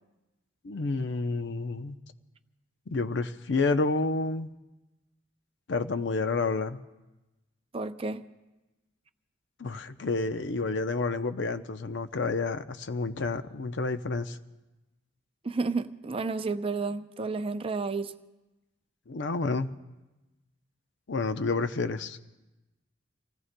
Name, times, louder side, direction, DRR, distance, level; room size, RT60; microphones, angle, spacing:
voice 1, 0.6-2.0 2.9-4.5 5.7-6.8 9.6-14.4 19.1-19.7 21.1-22.2, left 3 dB, 70° left, 10 dB, 0.6 m, -29 dB
voice 2, 7.7-8.3 15.4-18.1, right 3 dB, 30° right, 10 dB, 0.5 m, -31 dB
30.0 x 17.0 x 2.2 m, 1.1 s
head